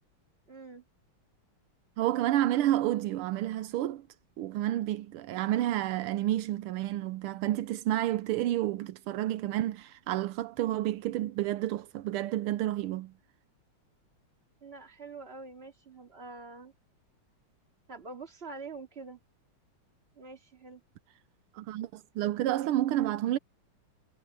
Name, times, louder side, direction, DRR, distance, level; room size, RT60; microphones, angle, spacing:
voice 1, 0.5-0.8 14.6-16.7 17.9-19.2 20.2-20.8, right 3 dB, 30° right, 2.6 m, -45 dB
voice 2, 2.0-4.0 4.4-13.1 21.5-23.4, right 13 dB, 85° right, 1.6 m, -30 dB
omnidirectional pair, 2.4 m